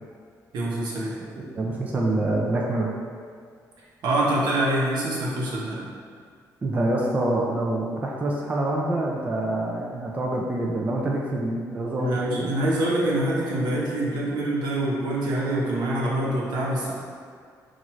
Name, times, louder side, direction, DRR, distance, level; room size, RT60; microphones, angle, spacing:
voice 1, 0.5-1.1 4.0-5.9 12.0-16.9, right 1 dB, 80° right, -5 dB, 0.9 m, -25 dB
voice 2, 1.3-2.9 6.6-12.6, right 1 dB, 20° right, -2 dB, 0.4 m, -26 dB
5.8 x 2.5 x 3.0 m, 2.1 s
cardioid pair, 175°, 7 cm